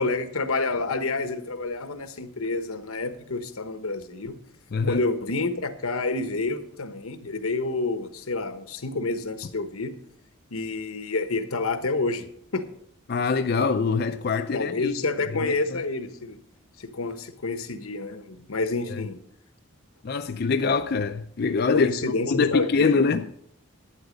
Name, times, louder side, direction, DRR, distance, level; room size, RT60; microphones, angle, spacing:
voice 1, 0.0-4.4 4.8-9.9 10.5-12.3 12.5-12.6 14.5-16.4 16.8-19.2 21.7-23.2, left 3 dB, 85° left, 1.1 m, -28 dB
voice 2, 13.1-15.0 15.3-15.5 18.9-19.0 20.0-21.9 22.3-23.3, left 4 dB, 45° left, 0.4 m, -24 dB
11.5 x 9.1 x 5.2 m
head